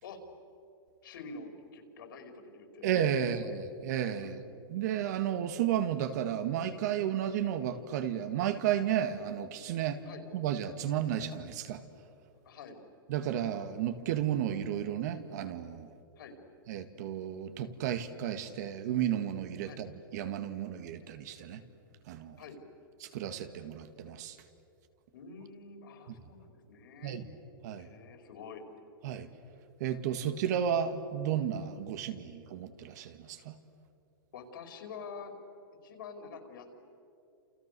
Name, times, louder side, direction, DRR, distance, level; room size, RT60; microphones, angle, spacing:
voice 1, 1.0-2.9 3.1-3.6 4.1-4.4 10.0-10.2 12.4-12.8 16.2-16.4 19.6-19.8 22.4-22.6 25.1-27.2 27.8-28.6 34.3-35.3 35.8-36.8, left 4 dB, 70° left, 4 dB, 5.1 m, -47 dB
voice 2, 2.8-4.4 4.7-10.0 10.3-11.8 13.1-15.9 16.7-21.6 22.1-22.4 23.0-24.4 27.0-27.3 27.6-27.9 29.0-29.3 29.8-33.5, right 9 dB, 50° right, 10 dB, 1.8 m, -33 dB
30.0 x 29.0 x 6.9 m, 2.6 s
supercardioid pair, 160°, 12 cm